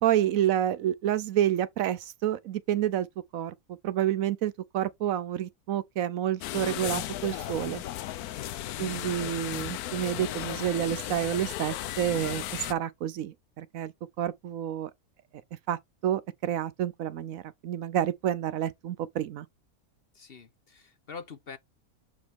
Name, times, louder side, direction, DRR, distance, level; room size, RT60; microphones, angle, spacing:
voice 1, 0.0-3.1 3.3-3.5 3.8-7.8 8.8-13.9 14.2-14.9 15.7-19.5, right 11 dB, 70° right, 1.0 m, -29 dB
sound 1, 6.4-12.7, left 13 dB, 85° left, 1.1 m, -35 dB
voice 2, 8.7-9.4 20.1-21.6, left 6 dB, 45° left, 1.0 m, -45 dB
7.4 x 5.0 x 3.5 m
omnidirectional pair, 1.5 m